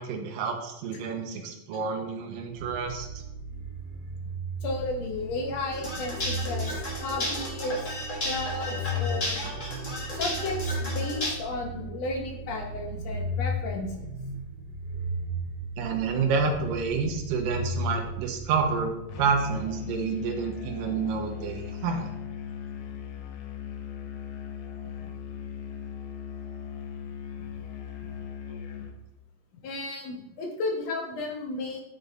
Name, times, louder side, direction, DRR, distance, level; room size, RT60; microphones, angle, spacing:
voice 1, 0.0-3.1 15.8-22.1, right 5 dB, 80° right, 3 dB, 2.5 m, -29 dB
sound 1, 2.5-19.4, equal, 50° right, 2.5 m, -35 dB
voice 2, 4.6-7.9 8.2-9.5 10.1-14.1 25.0-25.1 29.6-31.8, left 2 dB, 65° left, 1 dB, 1.8 m, -34 dB
sound 2, 5.7-11.3, left 1 dB, 45° left, 0.9 m, -33 dB
Musical instrument, 19.1-29.0, left 8 dB, 85° left, 1.4 m, -38 dB
10.0 x 4.2 x 3.3 m, 0.88 s
omnidirectional pair, 4.0 m